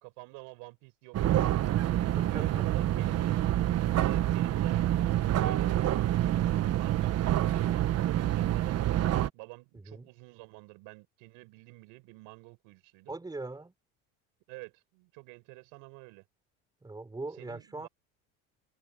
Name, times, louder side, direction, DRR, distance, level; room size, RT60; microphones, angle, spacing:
voice 1, 0.0-3.4 3.9-5.8 6.5-13.1 14.5-16.2 17.4-17.9, right 27 dB, 85° right, 5.6 m, -48 dB
sound 1, 1.1-9.3, right 13 dB, 50° right, 1.4 m, -27 dB
voice 2, 2.2-2.7 9.7-10.1 13.1-13.7 16.8-17.9, right 2 dB, 10° right, 5.6 m, -41 dB
cardioid pair, 120°, 32 cm